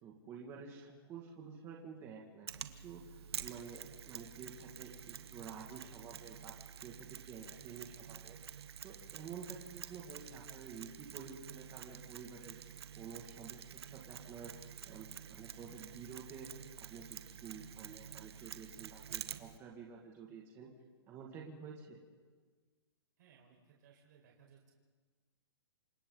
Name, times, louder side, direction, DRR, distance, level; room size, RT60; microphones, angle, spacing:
voice 1, 0.0-6.5 6.8-8.4 8.8-14.5 14.9-16.5 16.8-20.7 21.1-22.0, right 6 dB, 20° right, -1 dB, 2.1 m, -50 dB
Mechanisms, 2.5-19.6, right 8 dB, 70° right, 1.2 m, -49 dB
voice 2, 7.4-7.9 23.2-24.7, right 7 dB, 45° right, -1 dB, 4.9 m, -64 dB
28.0 x 26.5 x 4.0 m, 1.5 s
hypercardioid pair, 165°, 14 cm